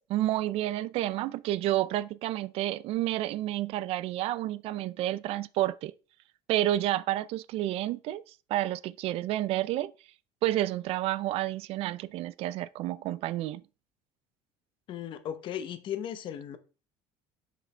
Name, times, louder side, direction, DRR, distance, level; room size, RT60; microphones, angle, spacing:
voice 1, 0.1-5.9 6.5-8.2 8.5-9.9 10.4-13.6, right 14 dB, 55° right, 0.4 m, -30 dB
voice 2, 14.9-16.6, left 10 dB, 45° left, 0.8 m, -36 dB
6.6 x 5.0 x 3.3 m
cardioid pair, 150°, 12 cm